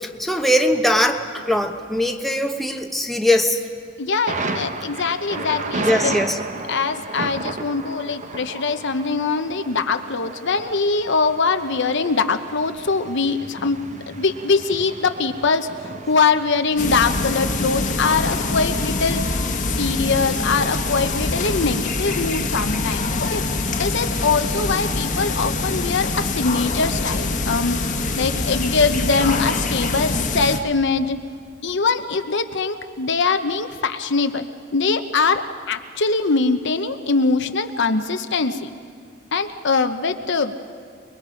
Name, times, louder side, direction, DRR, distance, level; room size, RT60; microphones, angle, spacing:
voice 1, 0.0-3.6 5.7-6.4, left 1 dB, ahead, 3 dB, 1.1 m, -21 dB
voice 2, 4.0-6.2 6.7-15.7 16.1-19.2 19.6-23.4 23.8-27.8 28.2-31.2 31.6-34.5 34.7-38.7 39.3-40.6, left 4 dB, 60° left, 8 dB, 1.0 m, -22 dB
Thunder, 4.3-21.7, right 3 dB, 35° right, 1.1 m, -34 dB
sound 1, 16.8-30.6, left 3 dB, 40° left, 1.4 m, -24 dB
29.5 x 21.0 x 5.1 m, 2.3 s
head